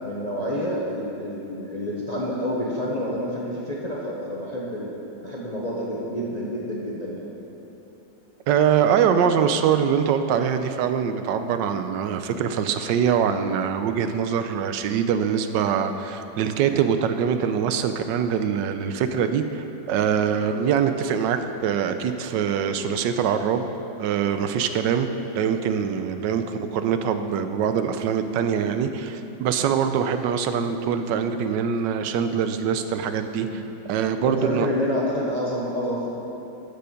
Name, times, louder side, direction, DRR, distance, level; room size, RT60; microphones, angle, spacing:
voice 1, 0.0-4.9 5.2-7.3 17.8-17.9 20.2-20.4 24.8-25.0 26.4-26.5 29.9-30.0 33.5-33.6 34.2-36.1, equal, 30° left, -4 dB, 0.9 m, -28 dB
voice 2, 8.5-23.7 24.0-33.6 33.9-34.7, right 7 dB, 85° right, 8 dB, 1.3 m, -23 dB
13.0 x 6.9 x 5.1 m, 3.0 s
omnidirectional pair, 1.9 m